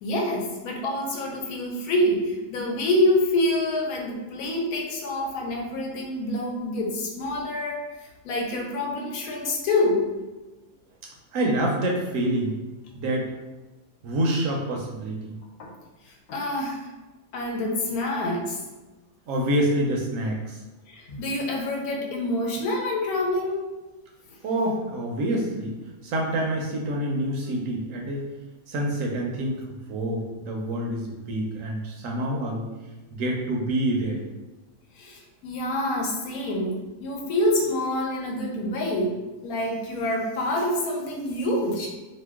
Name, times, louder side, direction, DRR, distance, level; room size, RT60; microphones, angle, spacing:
voice 1, 0.0-7.8 8.2-10.1 15.6-15.7 16.3-16.8 17.3-18.6 20.9-23.6 35.0-39.1 39.4-41.9, left 1 dB, 75° left, 0 dB, 1.1 m, -26 dB
voice 2, 11.3-12.6 12.9-13.3 14.0-15.3 19.3-20.6 24.4-25.8 26.0-28.2 28.7-32.6 33.1-34.2, right 1 dB, 70° right, 0 dB, 0.9 m, -27 dB
2.9 x 2.1 x 3.4 m, 1.1 s
omnidirectional pair, 1.6 m